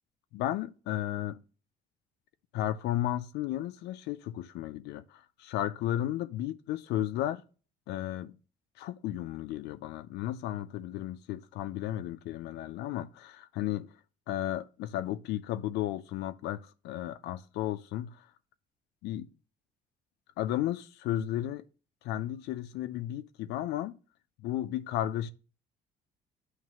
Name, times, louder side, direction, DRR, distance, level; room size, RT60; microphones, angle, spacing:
voice 1, 0.3-1.4 2.5-7.4 7.9-8.4 8.8-13.9 14.3-18.3 19.0-19.3 20.4-21.6 22.0-24.0 24.4-25.3, left 13 dB, 80° left, 0.4 m, -34 dB
9.2 x 3.2 x 6.1 m
cardioid pair, 110°, 17 cm